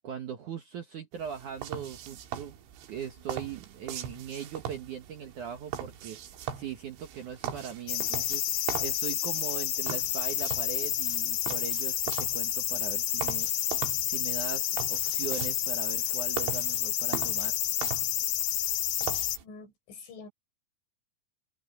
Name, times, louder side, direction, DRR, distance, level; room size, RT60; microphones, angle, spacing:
voice 1, 0.0-2.6 2.9-6.2 6.5-17.6, right 8 dB, 60° right, 2.1 m, -40 dB
sound 1, 1.1-19.4, right 9 dB, 80° right, 4.4 m, -41 dB
sound 2, 7.9-19.4, left 13 dB, 70° left, 2.2 m, -30 dB
voice 2, 19.4-20.3, left 4 dB, 85° left, 8.7 m, -46 dB
open air
omnidirectional pair, 5.2 m